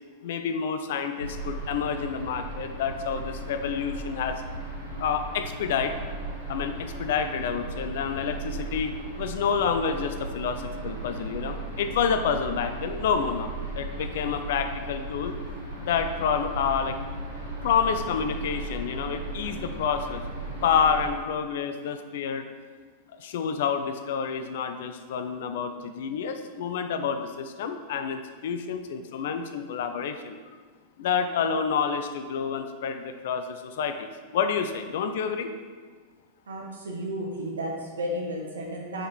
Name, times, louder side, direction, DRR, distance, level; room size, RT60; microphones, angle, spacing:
voice 1, 0.2-4.4 5.0-5.9 6.5-15.3 15.8-17.0 17.6-20.2 20.6-22.5 23.2-30.4 31.0-35.5, left 6 dB, 55° left, 7 dB, 0.3 m, -28 dB
sound 1, 1.2-21.1, right 2 dB, 90° left, 1.1 m, -36 dB
voice 2, 36.4-39.1, equal, 70° right, -1 dB, 0.8 m, -33 dB
3.6 x 3.5 x 4.2 m, 1.5 s
figure-of-eight pair, 90°, 0 cm